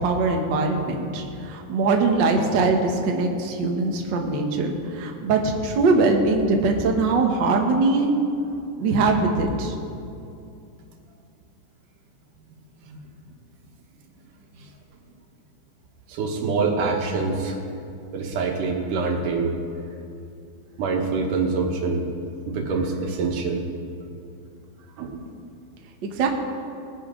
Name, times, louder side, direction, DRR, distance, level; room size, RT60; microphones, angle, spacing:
voice 1, 0.0-8.1 8.8-9.7 26.2-26.3, right 3 dB, 50° right, 2 dB, 1.4 m, -22 dB
voice 2, 16.1-17.6 18.1-19.5 20.8-22.1 22.5-23.6 25.0-25.2, right 4 dB, 90° right, 2 dB, 2.9 m, -25 dB
20.0 x 10.5 x 3.8 m, 2.6 s
omnidirectional pair, 3.6 m